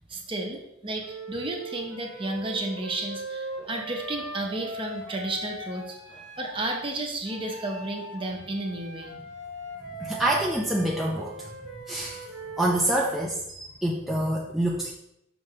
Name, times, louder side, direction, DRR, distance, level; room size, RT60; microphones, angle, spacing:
voice 1, 0.1-6.0 6.4-9.2, right 2 dB, 25° right, 1 dB, 0.9 m, -32 dB
Wind instrument woodwind instrument, 1.0-6.8 7.2-12.9, right 2 dB, 70° right, 1.3 m, -40 dB
voice 2, 10.0-11.5 11.9-12.2 12.6-14.9, right 1 dB, ahead, -4 dB, 0.5 m, -26 dB
5.9 x 5.7 x 3.2 m, 0.81 s
head